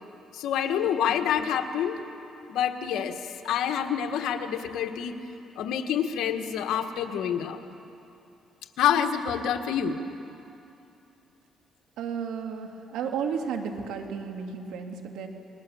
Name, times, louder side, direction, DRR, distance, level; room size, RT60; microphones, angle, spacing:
voice 1, 0.3-2.0 2.5-5.1 5.6-7.6 8.8-10.0, left 8 dB, 85° left, 6 dB, 1.5 m, -27 dB
voice 2, 12.0-15.3, right 6 dB, 90° right, 3 dB, 2.3 m, -33 dB
28.5 x 21.0 x 7.1 m, 2.8 s
cardioid pair, 90°, 0 cm